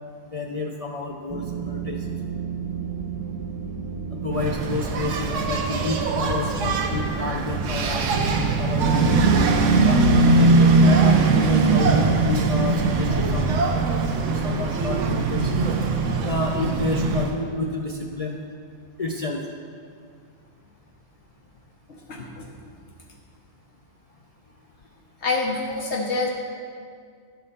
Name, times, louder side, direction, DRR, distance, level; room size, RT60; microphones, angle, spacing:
voice 1, 0.3-2.1 4.1-9.2 9.8-10.5 10.8-13.5 14.3-15.6 16.2-18.4 19.0-19.4, left 2 dB, 45° left, 0 dB, 0.4 m, -29 dB
sound 1, 1.3-13.7, right 5 dB, 30° right, 0.5 m, -34 dB
Engine, 4.4-17.3, right 3 dB, 85° right, 1.1 m, -21 dB
voice 2, 21.9-22.5 25.2-26.3, left 3 dB, 65° left, -1 dB, 1.2 m, -27 dB
10.5 x 4.3 x 6.7 m, 2.2 s
omnidirectional pair, 1.2 m